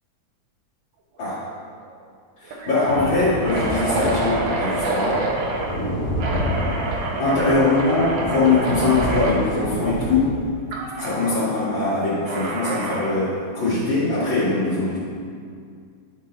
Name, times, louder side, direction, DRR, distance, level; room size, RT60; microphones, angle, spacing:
sound 1, 1.2-1.5 1.8-1.9 2.5-5.7 6.2-9.4 10.7-11.1 12.3-13.2, right 2 dB, 75° right, 1.7 m, -27 dB
voice 1, 2.4-5.2 7.2-10.3 11.0-15.0, left 3 dB, 70° left, -14 dB, 2.8 m, -22 dB
sound 2, 2.9-10.2, equal, 40° left, 1.8 m, -29 dB
11.0 x 4.0 x 3.9 m, 2.2 s
omnidirectional pair, 2.2 m